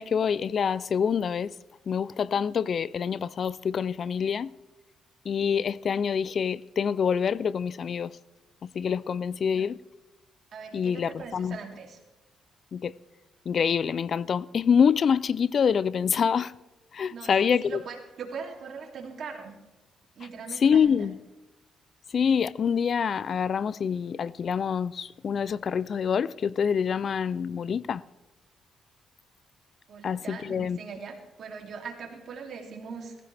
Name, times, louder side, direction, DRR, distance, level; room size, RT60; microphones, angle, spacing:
voice 1, 0.0-1.5 1.9-4.5 5.3-8.1 8.6-9.8 10.7-11.6 12.7-12.9 13.5-16.5 16.9-17.8 20.6-21.2 22.1-28.0 30.0-30.8, left 7 dB, 50° left, 0.4 m, -26 dB
voice 2, 10.5-12.0 17.1-19.6 20.1-21.1 29.9-33.2, right 5 dB, 60° right, 2.8 m, -41 dB
18.5 x 15.0 x 3.4 m
cardioid pair, 90°, 0 cm